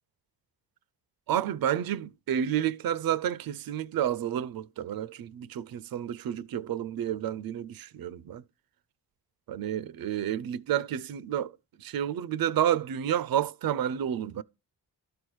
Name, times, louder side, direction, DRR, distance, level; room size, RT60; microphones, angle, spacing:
voice 1, 1.3-8.4 9.5-14.4, right 10 dB, 55° right, 0.6 m, -30 dB
12.0 x 4.5 x 4.8 m
supercardioid pair, 55°, 42 cm